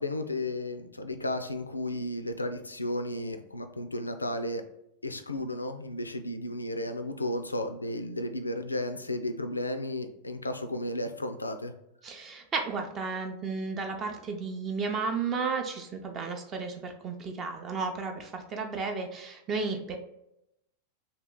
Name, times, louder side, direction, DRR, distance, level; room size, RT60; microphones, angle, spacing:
voice 1, 0.0-4.6 5.0-11.7, left 1 dB, 80° left, 8 dB, 0.3 m, -33 dB
voice 2, 12.0-20.0, right 4 dB, 30° right, 4 dB, 0.5 m, -33 dB
2.9 x 2.8 x 3.7 m, 0.84 s
figure-of-eight pair, 90°, 0 cm